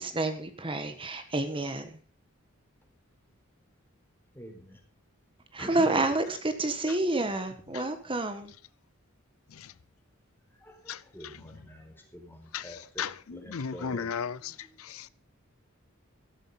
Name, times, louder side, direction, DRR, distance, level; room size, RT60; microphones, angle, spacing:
voice 1, 0.0-1.9 5.5-8.5, right 2 dB, 25° right, 1.6 m, -29 dB
voice 2, 4.3-4.8 5.6-6.0 10.6-14.1 14.4-14.7, equal, 10° left, 4.2 m, -46 dB
voice 3, 13.5-14.3, left 6 dB, 85° left, 0.6 m, -32 dB
14.0 x 12.0 x 5.6 m
head